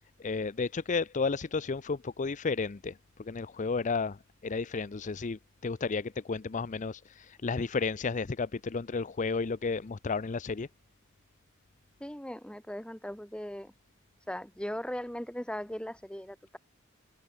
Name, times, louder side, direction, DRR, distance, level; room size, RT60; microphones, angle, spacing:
voice 1, 0.2-10.7, left 4 dB, 35° left, 0.5 m, -32 dB
voice 2, 12.0-13.7 14.3-16.6, equal, 5° left, 5.0 m, -38 dB
head